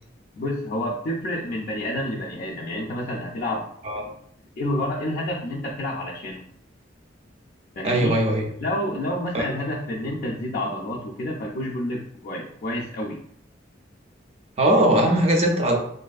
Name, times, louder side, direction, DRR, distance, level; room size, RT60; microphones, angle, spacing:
voice 1, 0.3-3.7 4.0-4.1 4.6-6.4 7.8-8.1 8.6-13.2, left 1 dB, 50° left, -4 dB, 0.3 m, -29 dB
voice 2, 7.8-8.5 9.3-9.4 14.6-15.8, right 1 dB, 35° right, 1 dB, 0.4 m, -20 dB
2.5 x 2.4 x 2.3 m, 0.67 s
head